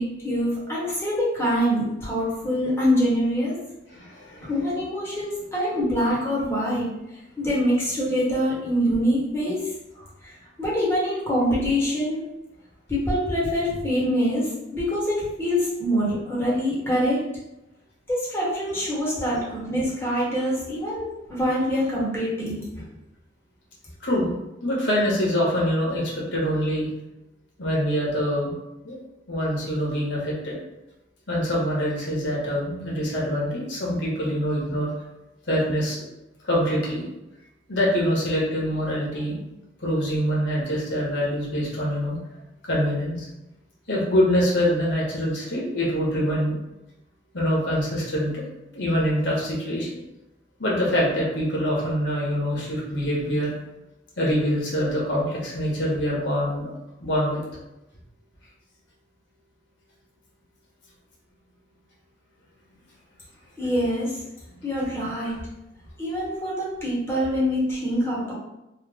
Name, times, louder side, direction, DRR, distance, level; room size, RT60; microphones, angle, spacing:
voice 1, 0.0-3.6 4.4-6.9 7.4-9.7 10.2-12.2 12.9-17.3 18.1-22.8 63.6-64.2 64.6-65.5 66.0-68.3, equal, 15° left, -7 dB, 1.1 m, -25 dB
voice 2, 3.9-4.5 24.0-24.3 24.6-26.9 27.6-28.5 28.8-29.0 29.3-30.6 31.3-34.9 35.5-36.0 36.4-37.0 37.7-39.4 39.8-42.2 42.6-43.3 43.9-46.6 47.3-48.4 48.7-49.9 50.6-53.5 54.2-56.7 57.0-57.4, equal, 75° left, -4 dB, 1.2 m, -24 dB
3.2 x 2.1 x 3.5 m, 0.94 s
head